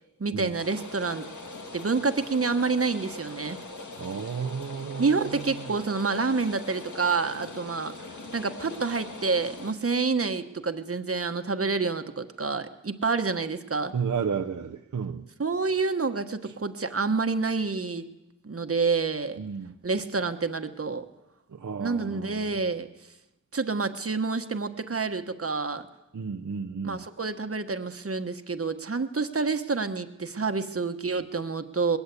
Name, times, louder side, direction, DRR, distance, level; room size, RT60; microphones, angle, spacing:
voice 1, 0.2-1.3 1.7-3.6 5.0-7.9 8.3-13.9 15.4-18.1 18.4-19.4 19.8-21.0 21.8-22.9 23.5-25.9 26.8-32.0, right 4 dB, 45° right, 1.3 m, -28 dB
Rain, 0.6-9.7, left 2 dB, 70° left, 2.0 m, -42 dB
voice 2, 4.0-5.2 13.9-15.2 19.4-19.7 21.5-22.5 26.1-27.0, right 6 dB, 70° right, 0.8 m, -32 dB
20.5 x 16.5 x 8.4 m
wide cardioid pair, 65°, 31 cm